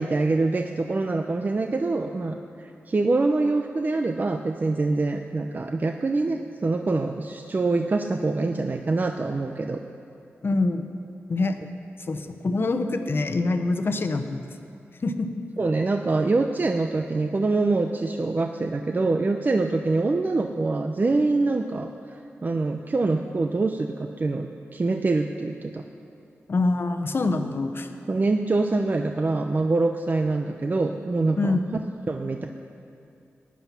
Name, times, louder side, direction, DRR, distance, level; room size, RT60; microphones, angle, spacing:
voice 1, 0.0-9.8 15.6-25.8 28.1-31.6 32.1-32.5, right 3 dB, 40° right, 5 dB, 0.6 m, -25 dB
voice 2, 10.4-11.0 11.3-11.6 12.0-14.4 15.0-15.3 26.5-27.9 31.4-31.6, left 3 dB, 50° left, 7 dB, 1.0 m, -25 dB
15.5 x 9.9 x 5.8 m, 2.6 s
cardioid pair, 65°, 5 cm